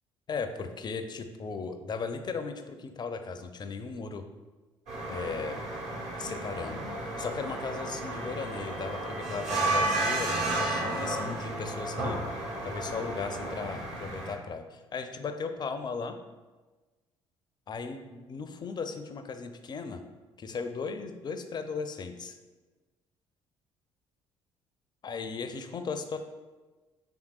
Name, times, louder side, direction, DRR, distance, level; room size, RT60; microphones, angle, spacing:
voice 1, 0.3-4.2 5.1-5.6 6.2-6.8 7.2-12.2 12.6-16.2 17.7-20.0 20.4-22.4 25.0-26.2, left 5 dB, 30° left, 8 dB, 0.4 m, -36 dB
sound 1, 4.9-14.3, right 2 dB, 60° right, 1.0 m, -32 dB
4.5 x 3.5 x 2.3 m, 1.2 s
figure-of-eight pair, 50°, 14 cm